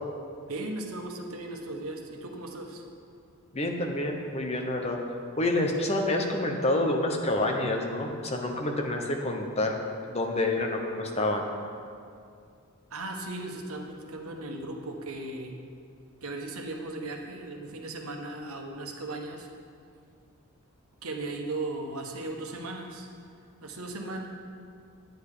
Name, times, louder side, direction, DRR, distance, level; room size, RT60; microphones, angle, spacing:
voice 1, 0.5-2.8 12.9-15.5 16.2-19.5 21.0-23.1 23.6-24.3, right 2 dB, 80° right, 2 dB, 1.3 m, -37 dB
voice 2, 3.5-5.0 5.4-9.7 10.1-11.5, left 1 dB, 30° left, 2 dB, 1.0 m, -28 dB
10.5 x 9.2 x 5.0 m, 2.3 s
head